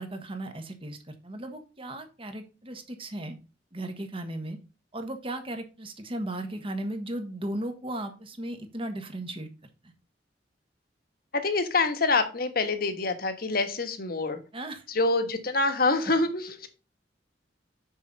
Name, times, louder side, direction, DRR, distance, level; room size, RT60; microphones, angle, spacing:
voice 1, 0.0-3.4 3.7-4.6 4.9-9.5 9.8-9.9 14.5-14.8, right 1 dB, 30° right, 7 dB, 1.4 m, -36 dB
voice 2, 11.3-14.4 14.9-16.7, left 3 dB, 55° left, 8 dB, 1.4 m, -26 dB
6.5 x 6.4 x 5.4 m, 0.32 s
head